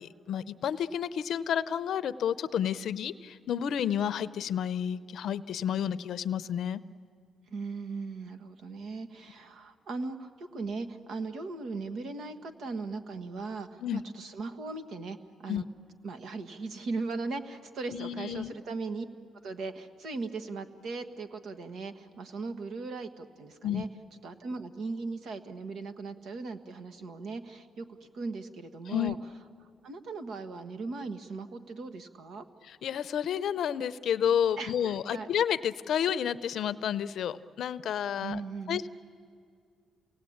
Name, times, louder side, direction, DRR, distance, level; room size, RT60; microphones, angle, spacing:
voice 1, 0.0-6.8 13.8-14.0 15.5-15.6 17.9-18.5 23.6-23.9 28.9-29.1 32.7-38.4 38.7-38.9, left 9 dB, 70° left, 15 dB, 0.6 m, -30 dB
voice 2, 7.5-15.6 16.0-19.0 19.4-23.9 24.2-27.9 28.1-29.2 29.8-32.4 34.6-35.3 38.2-38.9, right 3 dB, 70° right, 10 dB, 1.4 m, -38 dB
28.5 x 18.5 x 8.7 m, 2.3 s
cardioid pair, 90°, 0 cm